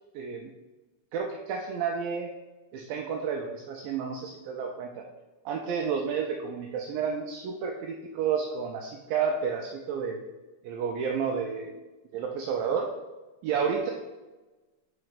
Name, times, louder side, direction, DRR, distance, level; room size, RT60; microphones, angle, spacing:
voice 1, 0.1-0.5 1.1-2.3 2.7-5.0 5.5-10.2 10.6-11.8 12.1-12.9 13.4-13.9, right 6 dB, 80° right, 1 dB, 2.1 m, -31 dB
5.6 x 4.2 x 5.0 m, 1.2 s
omnidirectional pair, 4.5 m